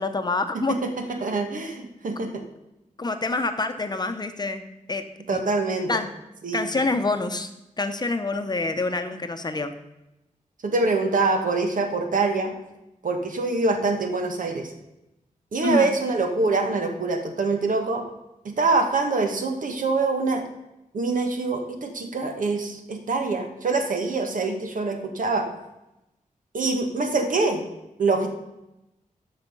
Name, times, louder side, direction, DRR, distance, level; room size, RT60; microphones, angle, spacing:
voice 1, 0.0-0.7 3.0-5.0 5.9-6.1 6.5-7.5 7.8-9.7 15.6-16.0, left 3 dB, 30° left, 8 dB, 0.8 m, -26 dB
voice 2, 0.7-2.4 5.3-6.0 6.4-6.8 10.6-12.5 13.0-14.7 15.5-18.0 18.4-20.4 20.9-25.5 26.5-27.7 28.0-28.3, right 3 dB, 75° right, 5 dB, 1.4 m, -25 dB
12.5 x 5.7 x 5.4 m, 0.92 s
wide cardioid pair, 130°, 14 cm